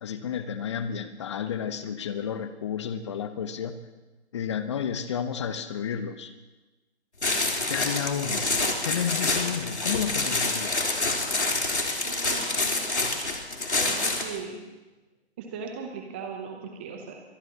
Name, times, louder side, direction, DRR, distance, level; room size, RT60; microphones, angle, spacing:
voice 1, 0.0-3.8 4.3-6.3 7.7-8.5 8.8-10.9, left 7 dB, 25° left, 11 dB, 0.9 m, -31 dB
sound 1, 7.2-14.4, left 2 dB, 80° left, 3.5 m, -27 dB
voice 2, 12.0-12.8 13.9-14.6 15.4-17.2, right 5 dB, 10° right, 3 dB, 0.6 m, -38 dB
25.0 x 19.5 x 2.9 m, 1.2 s
figure-of-eight pair, 145°, 33 cm